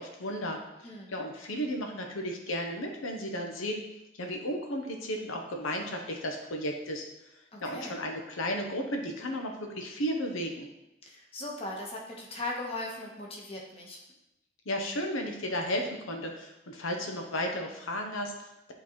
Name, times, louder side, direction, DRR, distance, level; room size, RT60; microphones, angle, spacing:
voice 1, 0.0-3.8 4.2-7.1 7.6-10.7 14.7-18.7, equal, 85° left, 3 dB, 0.9 m, -34 dB
voice 2, 7.5-8.0 11.1-14.0, left 2 dB, 30° left, -2 dB, 1.2 m, -38 dB
11.0 x 3.9 x 3.1 m, 0.89 s
head